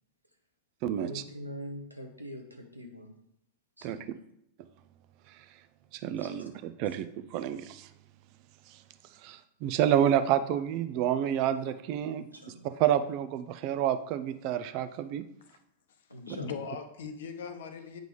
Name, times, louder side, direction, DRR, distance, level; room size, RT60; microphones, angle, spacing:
voice 1, 1.0-3.1 3.8-4.2 6.2-6.5 6.8-7.0 11.6-11.7 12.1-12.8 16.1-16.7, equal, 85° right, 4 dB, 1.0 m, -44 dB
voice 2, 6.0-7.9 9.2-12.2 12.8-15.2, right 10 dB, 45° right, 11 dB, 0.5 m, -29 dB
voice 3, 16.3-18.0, left 6 dB, 60° left, 7 dB, 0.8 m, -39 dB
8.1 x 5.2 x 3.1 m, 0.77 s
figure-of-eight pair, 90°, 0 cm